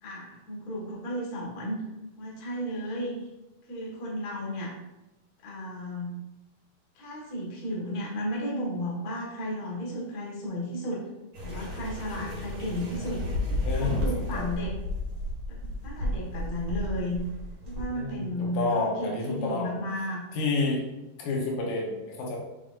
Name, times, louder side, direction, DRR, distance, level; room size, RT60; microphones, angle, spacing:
voice 1, 0.0-1.8 2.2-3.1 3.7-4.7 5.4-6.2 6.9-11.0 11.4-13.2 13.6-14.7 15.5-17.2 17.6-20.2, equal, 35° left, -5 dB, 1.6 m, -34 dB
sound 1, 11.3-17.8, left 1 dB, 30° right, 1.5 m, -32 dB
voice 2, 13.6-14.1 14.3-14.5 17.9-19.7 20.3-20.8 21.2-22.4, left 3 dB, 80° left, -2 dB, 2.9 m, -29 dB
6.8 x 5.8 x 2.6 m, 1.0 s
omnidirectional pair, 3.9 m